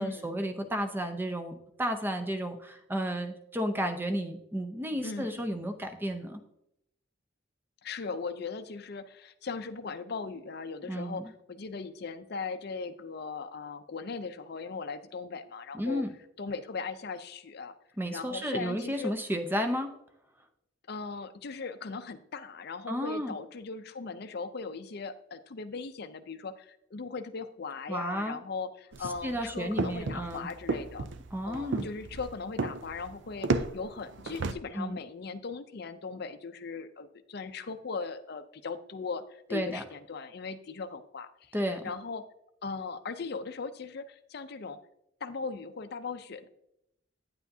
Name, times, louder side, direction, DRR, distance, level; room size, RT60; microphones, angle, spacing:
voice 1, 0.0-6.4 10.9-11.2 15.7-16.1 18.0-19.9 22.9-23.4 27.9-28.4 29.2-30.5 31.3-31.9 34.7-35.0 39.5-39.8 41.5-41.8, equal, 10° right, 6 dB, 0.7 m, -32 dB
voice 2, 5.0-5.4 7.8-16.0 16.4-17.8 18.1-19.2 20.9-31.1 31.4-42.3 42.6-44.8 45.2-46.5, left 4 dB, 55° left, 10 dB, 0.5 m, -39 dB
sound 1, 28.9-34.5, right 3 dB, 60° right, 0.5 m, -33 dB
9.4 x 8.3 x 2.7 m, 0.78 s
head